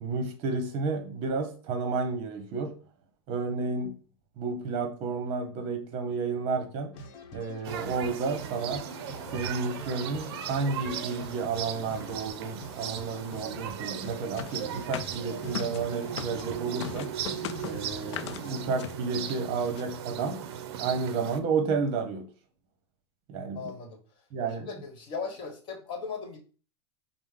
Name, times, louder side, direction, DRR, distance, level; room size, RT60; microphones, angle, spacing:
voice 1, 0.0-2.7 3.3-3.9 4.4-6.9 7.3-8.9 9.3-17.1 17.6-20.4 20.8-22.3 23.3-23.6 24.3-24.7, right 4 dB, 40° right, 0.9 m, -31 dB
sound 1, 6.9-18.6, left 2 dB, 55° left, 0.9 m, -46 dB
sound 2, 7.6-21.4, right 9 dB, 60° right, 0.5 m, -38 dB
sound 3, 14.4-16.5 16.8-18.4 18.8-19.0 19.3-19.4 19.6-19.8, left 9 dB, 85° left, 0.4 m, -38 dB
voice 2, 23.5-24.0 24.4-26.4, left 5 dB, 35° left, 1.2 m, -38 dB
5.1 x 2.0 x 3.6 m
supercardioid pair, 140°, 14 cm